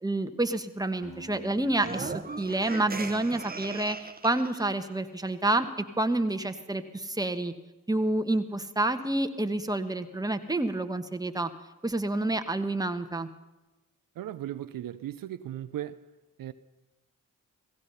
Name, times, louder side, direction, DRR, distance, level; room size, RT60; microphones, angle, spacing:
voice 1, 0.0-7.5 7.9-11.5 11.8-13.3, right 2 dB, 10° right, 1.3 m, -29 dB
Acoustic guitar, 1.0-4.0, left 1 dB, 65° left, 4.8 m, -52 dB
sound 1, 1.7-4.7, right 4 dB, 25° right, 1.1 m, -38 dB
voice 2, 14.2-16.0 16.4-16.5, right 12 dB, 75° right, 0.6 m, -37 dB
16.5 x 16.0 x 5.6 m
supercardioid pair, 50°, 34 cm